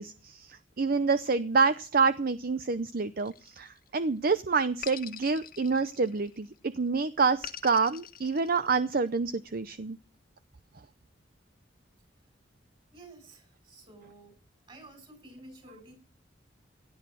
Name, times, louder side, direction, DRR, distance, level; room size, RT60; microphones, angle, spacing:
voice 1, 0.0-10.0, right 4 dB, 50° right, 13 dB, 0.6 m, -27 dB
sound 1, 3.2-4.1 4.8-6.5 7.4-9.1, left 9 dB, 50° left, 1.5 m, -44 dB
voice 2, 12.9-14.4 14.7-16.0, right 2 dB, 30° right, 5 dB, 7.3 m, -51 dB
17.0 x 10.5 x 6.1 m, 0.37 s
head